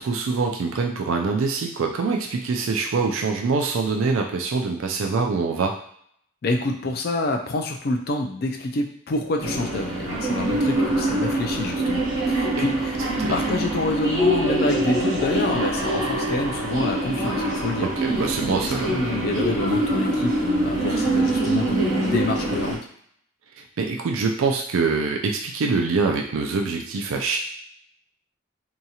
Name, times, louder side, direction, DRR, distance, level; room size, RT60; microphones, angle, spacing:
voice 1, 0.0-5.7 13.2-13.5 17.8-18.9 23.8-27.4, right 4 dB, 90° right, 2 dB, 0.4 m, -24 dB
voice 2, 6.4-13.0 13.3-17.9 18.6-22.8, left 2 dB, 50° left, 3 dB, 0.4 m, -27 dB
sound 1, 9.4-22.8, right 1 dB, 70° right, 1.0 m, -24 dB
2.8 x 2.3 x 2.7 m, 0.65 s
head